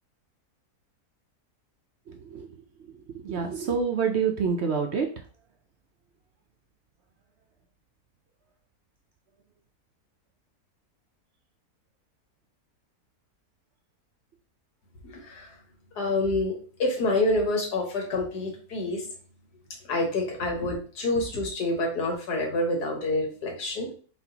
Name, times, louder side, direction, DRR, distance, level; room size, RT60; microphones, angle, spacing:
voice 1, 2.1-2.5 3.1-5.1, right 6 dB, 65° right, 4 dB, 0.7 m, -27 dB
voice 2, 15.0-15.6 16.0-19.1 19.8-23.9, left 2 dB, 90° left, 1 dB, 1.8 m, -27 dB
4.2 x 4.2 x 2.8 m, 0.40 s
omnidirectional pair, 1.7 m